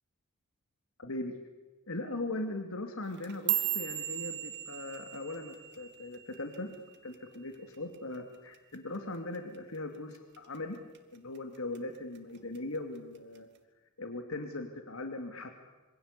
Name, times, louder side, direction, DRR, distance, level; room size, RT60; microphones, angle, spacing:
voice 1, 1.0-1.3 1.9-6.7 7.0-10.8 11.1-13.5 14.0-15.5, left 2 dB, 75° left, 5 dB, 2.6 m, -39 dB
sound 1, 3.0-7.5 7.7-8.2 8.5-9.0 9.3-9.6 10.1-10.6 10.9-11.8 12.1-12.6 13.4-13.5, right 12 dB, 50° right, 2.4 m, -36 dB
27.0 x 24.5 x 8.4 m, 1.2 s
head